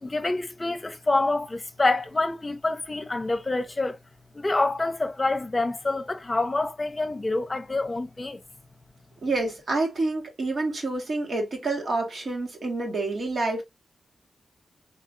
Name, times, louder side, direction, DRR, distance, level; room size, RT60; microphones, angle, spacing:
voice 1, 0.0-4.0 4.3-8.4, left 2 dB, 35° left, 0.9 m, -27 dB
voice 2, 9.2-13.6, right 2 dB, 65° right, 2.0 m, -28 dB
4.1 x 3.4 x 2.7 m
cardioid pair, 50°, 0 cm